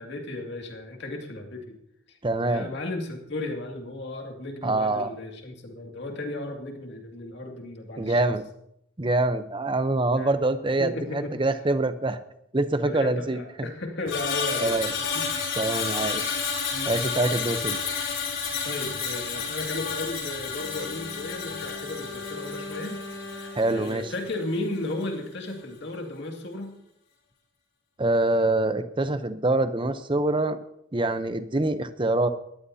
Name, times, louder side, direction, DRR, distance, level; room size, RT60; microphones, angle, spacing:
voice 1, 0.0-1.8 2.1-2.2 2.4-8.3 10.2-10.3 10.8-11.3 12.8-14.8 15.1-15.2 16.7-16.9 18.6-26.7, left 2 dB, 55° left, 2 dB, 2.3 m, -35 dB
voice 2, 2.2-2.7 4.6-5.1 8.0-8.4 9.0-12.2 12.5-13.4 14.6-14.9 15.6-16.4 16.9-17.8 23.5-24.1 28.0-30.6 30.9-32.3, right 2 dB, 25° right, 11 dB, 0.7 m, -25 dB
Screech, 14.1-24.4 24.7-25.0, left 5 dB, 75° left, 5.0 m, -31 dB
Bowed string instrument, 20.5-25.0 25.2-25.4, left 2 dB, 15° left, 1.9 m, -41 dB
19.5 x 14.0 x 2.8 m, 0.77 s
head